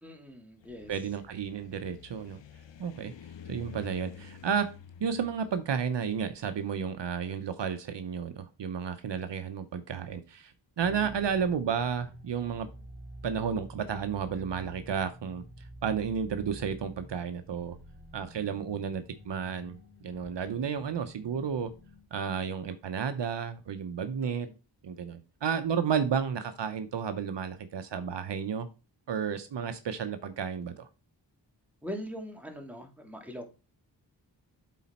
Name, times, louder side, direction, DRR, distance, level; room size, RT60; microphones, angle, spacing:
voice 1, 0.0-0.9 10.9-11.1 24.2-24.5 31.8-33.5, equal, 5° right, 3 dB, 2.1 m, -42 dB
sound 1, 0.6-7.7, left 7 dB, 75° left, 0.9 m, -50 dB
voice 2, 0.9-2.4 2.8-3.1 3.5-4.7 5.0-12.7 13.2-15.4 15.8-17.8 18.1-19.8 20.0-21.7 22.1-24.5 24.8-28.7 29.1-30.9, right 7 dB, 70° right, 10 dB, 0.8 m, -32 dB
sound 2, 10.8-22.0, right 1 dB, 20° right, 3.7 m, -49 dB
8.4 x 4.1 x 4.2 m, 0.31 s
cardioid pair, 50°, 44 cm